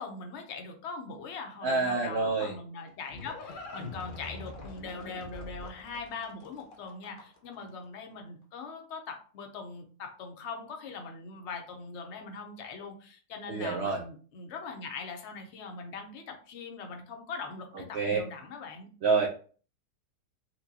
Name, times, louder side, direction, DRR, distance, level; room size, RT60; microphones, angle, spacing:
voice 1, 0.0-18.9, left 4 dB, 55° left, 4 dB, 0.8 m, -41 dB
voice 2, 1.6-2.5 13.5-14.0 17.9-18.2 19.0-19.3, right 4 dB, 70° right, 1 dB, 0.6 m, -27 dB
Livestock farm animals working animals, 2.8-7.5, left 2 dB, 75° left, 0.4 m, -44 dB
4.3 x 2.2 x 2.7 m, 0.41 s
omnidirectional pair, 1.7 m